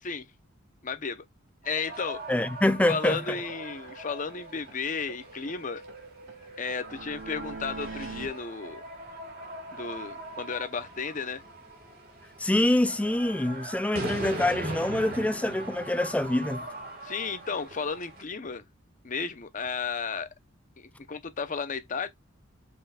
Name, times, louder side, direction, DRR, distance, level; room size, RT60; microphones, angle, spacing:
voice 1, 0.8-1.2 1.6-2.2 2.9-5.8 6.6-8.8 9.7-11.4 17.0-18.7 19.0-20.3 20.8-22.1, left 5 dB, 40° left, 0.6 m, -33 dB
sound 1, 1.6-18.2, right 2 dB, 50° right, 1.7 m, -41 dB
sound 2, 1.9-2.0 2.3-2.4 2.7-2.8 3.1-3.2 3.5-4.8 5.1-8.3, right 3 dB, 70° right, 1.7 m, -44 dB
voice 2, 2.3-3.4 12.4-16.7, left 1 dB, 5° left, 0.3 m, -25 dB
5.5 x 3.9 x 2.3 m
head